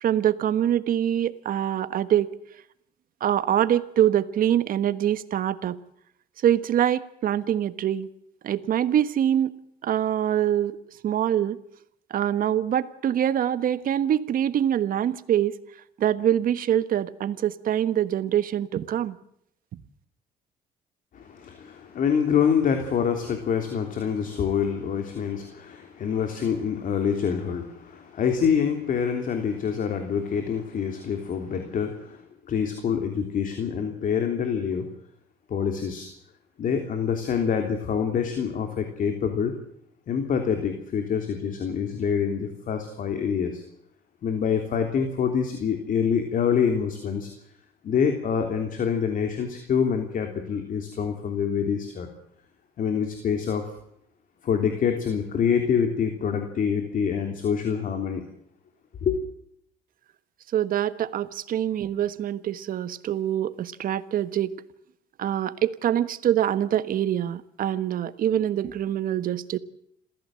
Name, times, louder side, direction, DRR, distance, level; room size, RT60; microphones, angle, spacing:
voice 1, 0.0-2.3 3.2-5.8 6.4-8.1 8.4-9.5 9.8-10.8 11.0-11.6 12.1-15.6 16.0-19.2 19.7-19.8 60.5-64.5 65.2-69.6, right 10 dB, 55° right, 13 dB, 1.4 m, -24 dB
voice 2, 21.1-34.9 35.5-36.1 36.6-39.5 40.1-43.6 44.2-47.3 47.8-52.1 52.8-53.8 54.4-58.2 59.0-59.2, left 7 dB, 55° left, 5 dB, 3.2 m, -26 dB
27.5 x 15.5 x 7.7 m, 0.73 s
cardioid pair, 110°, 17 cm